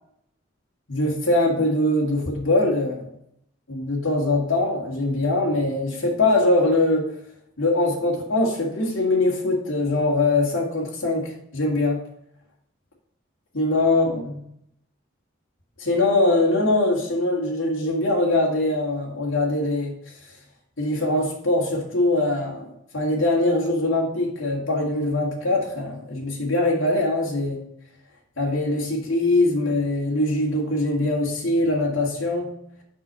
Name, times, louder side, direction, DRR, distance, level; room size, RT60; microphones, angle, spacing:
voice 1, 0.9-3.1 3.7-7.1 7.6-12.0 13.5-14.4 15.8-19.9 20.8-22.6 22.9-27.6 28.4-32.5, left 2 dB, 80° left, -3 dB, 2.1 m, -22 dB
6.1 x 5.5 x 5.5 m, 0.73 s
head